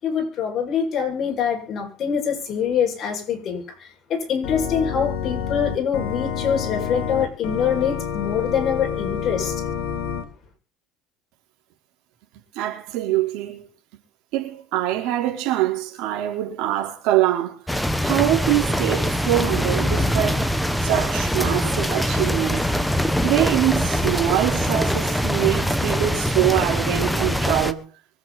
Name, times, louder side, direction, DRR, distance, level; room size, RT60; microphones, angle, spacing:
voice 1, 0.0-9.6, left 7 dB, 40° left, 6.9 m, -24 dB
Organ, 4.4-10.2, left 8 dB, 75° left, 2.7 m, -28 dB
voice 2, 12.5-13.6 14.3-17.6 18.0-20.5 20.8-22.7 23.2-27.9, right 14 dB, 70° right, 4.4 m, -24 dB
sound 1, 17.7-27.7, equal, ahead, 1.2 m, -23 dB
24.5 x 8.3 x 4.4 m
cardioid pair, 130°, 0 cm